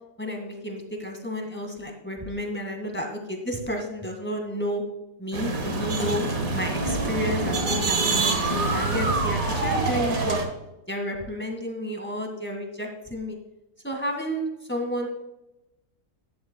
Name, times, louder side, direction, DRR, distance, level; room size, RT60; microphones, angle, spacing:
voice 1, 0.2-4.8 5.2-10.4 10.9-13.4 13.8-15.1, equal, 5° left, 2 dB, 1.7 m, -31 dB
sound 1, 5.3-10.4, right 3 dB, 60° right, 1.9 m, -25 dB
12.0 x 12.0 x 2.3 m, 0.97 s
omnidirectional pair, 1.7 m